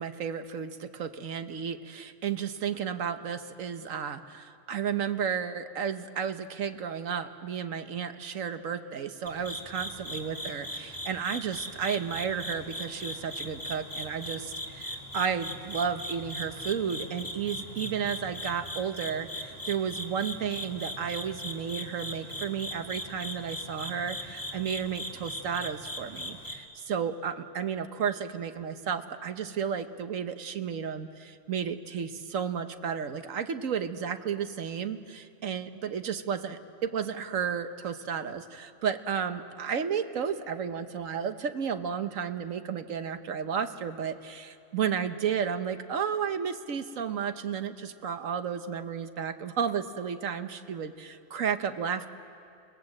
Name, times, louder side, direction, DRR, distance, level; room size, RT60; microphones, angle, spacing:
voice 1, 0.0-52.1, right 7 dB, 80° right, 9 dB, 1.4 m, -33 dB
sound 1, 9.3-26.6, equal, 15° left, 2.0 m, -39 dB
29.0 x 19.5 x 7.8 m, 2.4 s
omnidirectional pair, 1.4 m